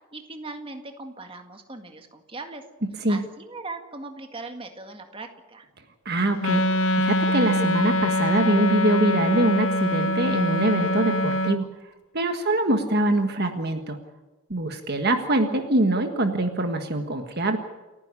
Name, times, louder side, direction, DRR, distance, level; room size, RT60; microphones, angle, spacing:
voice 1, 0.1-2.6 3.1-5.7, right 3 dB, 25° right, 5 dB, 1.9 m, -39 dB
voice 2, 6.0-6.6 6.9-11.7 12.1-14.0 14.5-17.6, right 1 dB, 45° right, 6 dB, 1.6 m, -23 dB
Wind instrument woodwind instrument, 6.4-11.6, left 1 dB, 70° left, 1.1 m, -24 dB
29.5 x 10.0 x 9.8 m, 1.2 s
head